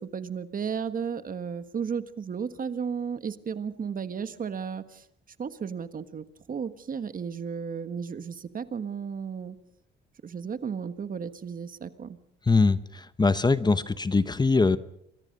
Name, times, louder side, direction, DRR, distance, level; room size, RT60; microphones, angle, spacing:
voice 1, 0.0-5.0 5.4-9.6 10.2-12.2, right 6 dB, 45° right, 11 dB, 1.5 m, -34 dB
voice 2, 12.5-14.8, left 3 dB, 20° left, 14 dB, 0.9 m, -22 dB
27.0 x 23.0 x 5.4 m, 0.71 s
cardioid pair, 90°, 20 cm